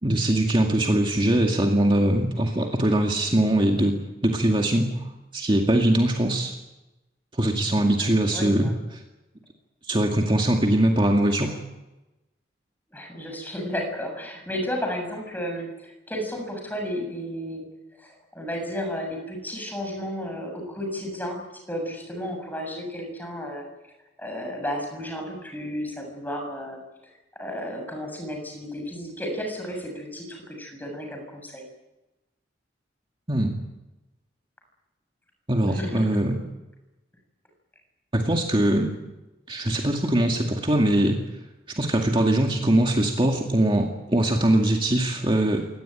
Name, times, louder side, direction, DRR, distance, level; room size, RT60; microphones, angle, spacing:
voice 1, 0.0-6.5 7.4-9.0 9.9-11.6 33.3-33.6 35.5-36.4 38.1-38.9 39.5-41.2 41.7-45.7, right 1 dB, 30° right, 1 dB, 2.2 m, -22 dB
voice 2, 8.0-8.7 12.9-17.6 18.0-21.4 21.7-23.6 24.2-26.8 27.4-31.6 35.7-36.1, equal, 10° left, 3 dB, 7.2 m, -33 dB
23.5 x 19.0 x 9.2 m, 1.0 s
head